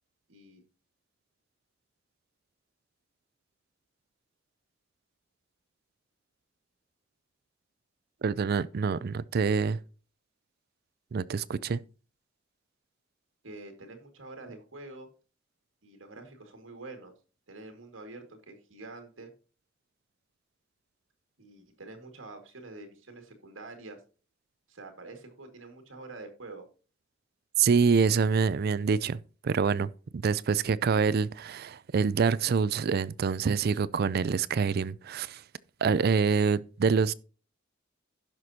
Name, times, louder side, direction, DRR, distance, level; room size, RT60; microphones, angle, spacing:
voice 1, 0.3-0.6 13.4-15.1 15.8-17.1 17.5-19.3 21.4-24.0 24.7-26.7, right 2 dB, 75° right, 2.0 m, -46 dB
voice 2, 8.2-9.8 11.1-11.8 27.6-29.9 30.2-35.4 35.8-37.1, right 5 dB, 50° right, 0.4 m, -26 dB
16.0 x 6.1 x 2.8 m
head